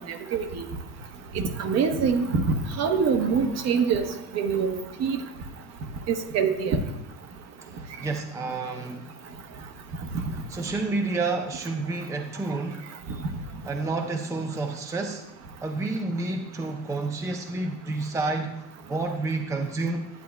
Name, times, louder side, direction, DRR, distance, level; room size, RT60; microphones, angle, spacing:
voice 1, 0.1-0.6 1.3-2.4 2.8-4.1 4.3-4.7 5.0-5.2 6.1-6.8, right 6 dB, 50° right, 6 dB, 1.0 m, -24 dB
voice 2, 7.6-9.1 10.5-12.9 13.6-15.2 15.6-20.1, right 3 dB, 10° right, 4 dB, 0.5 m, -30 dB
10.5 x 8.3 x 2.2 m, 0.91 s
supercardioid pair, 120°, 34 cm